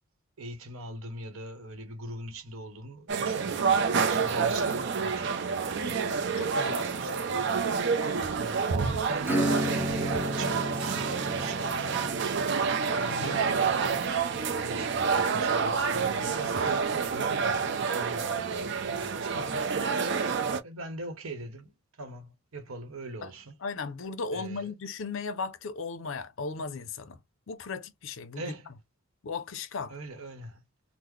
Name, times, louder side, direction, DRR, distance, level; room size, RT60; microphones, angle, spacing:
voice 1, 0.4-7.6 8.3-11.8 12.7-14.2 14.6-19.8 20.6-23.6 24.3-24.7 28.3-28.7 29.9-30.6, right 2 dB, 75° right, 0.9 m, -42 dB
sound 1, 3.1-20.6, right 5 dB, 55° right, 0.4 m, -28 dB
voice 2, 6.4-6.9 13.0-13.4 19.3-19.7 23.2-23.3 23.6-27.2 27.5-28.5 29.2-29.9, left 4 dB, 65° left, 0.5 m, -36 dB
Acoustic guitar / Strum, 9.2-15.5, equal, 10° right, 0.6 m, -34 dB
3.7 x 2.0 x 3.1 m
head